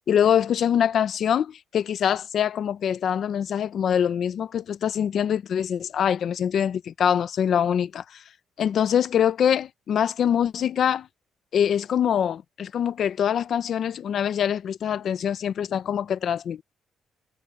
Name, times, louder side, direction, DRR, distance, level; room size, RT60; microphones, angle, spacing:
voice 1, 0.1-8.0 8.6-11.1 11.5-16.6, left 9 dB, 65° left, 0.9 m, -24 dB
cardioid pair, 90°, 0 cm